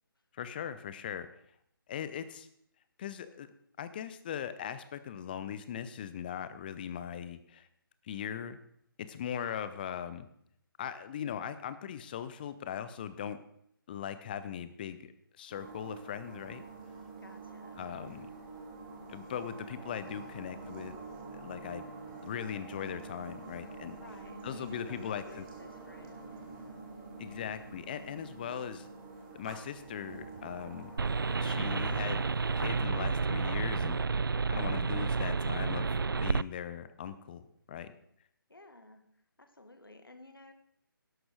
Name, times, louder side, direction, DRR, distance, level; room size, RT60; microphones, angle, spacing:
voice 1, 0.3-1.3 1.9-2.5 3.0-3.5 3.8-7.7 8.0-8.6 9.0-10.3 10.8-13.4 13.9-15.1 15.4-16.6 17.8-18.3 19.1-20.9 21.3-21.8 22.2-24.0 24.4-25.4 27.2-28.9 29.3-30.9 31.4-32.2 32.6-34.0 34.5-37.4 37.7-37.9, left 9 dB, 25° left, 13 dB, 0.9 m, -39 dB
sound 1, 15.5-32.8, right 3 dB, 20° right, 2.8 m, -47 dB
voice 2, 17.2-18.3 24.0-26.3 38.5-40.5, left 2 dB, 70° left, 6 dB, 2.2 m, -54 dB
sound 2, 31.0-36.4, right 4 dB, 65° right, 0.4 m, -30 dB
12.5 x 11.5 x 5.0 m, 0.72 s
figure-of-eight pair, 145°, 12 cm